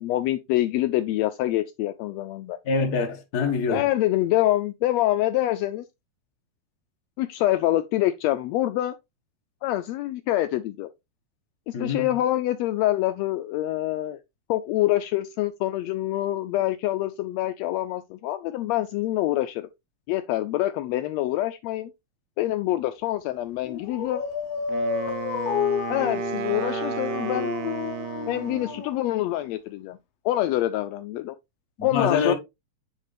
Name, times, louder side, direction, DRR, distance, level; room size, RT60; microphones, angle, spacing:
voice 1, 0.0-2.6 3.7-5.8 7.2-8.9 9.6-10.9 11.7-14.2 14.5-19.7 20.1-21.9 22.4-24.3 25.9-27.5 28.3-30.0 30.2-31.3 31.8-32.3, left 15 dB, 85° left, 1.5 m, -25 dB
voice 2, 2.6-3.8 11.7-12.1 31.8-32.3, left 4 dB, 45° left, 1.3 m, -25 dB
Dog, 23.7-29.3, left 7 dB, 70° left, 1.7 m, -30 dB
Wind instrument woodwind instrument, 24.7-28.9, right 13 dB, 80° right, 2.1 m, -33 dB
9.1 x 3.7 x 3.3 m
omnidirectional pair, 3.5 m